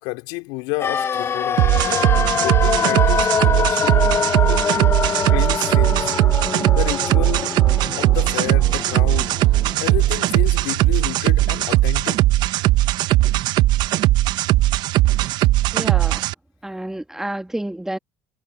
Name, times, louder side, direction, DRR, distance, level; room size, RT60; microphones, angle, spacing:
voice 1, 0.0-2.1 2.4-4.0 4.5-4.6 5.3-6.1 6.7-7.5 8.0-12.5, left 25 dB, 80° left, 3.3 m, -30 dB
sound 1, 0.8-10.7 11.0-11.1, left 6 dB, 30° left, 0.6 m, -24 dB
sound 2, 1.6-16.3, right 16 dB, 65° right, 0.7 m, -18 dB
voice 2, 15.7-16.3 16.6-18.0, right 1 dB, 5° right, 1.4 m, -29 dB
supercardioid pair, 90°, 8 cm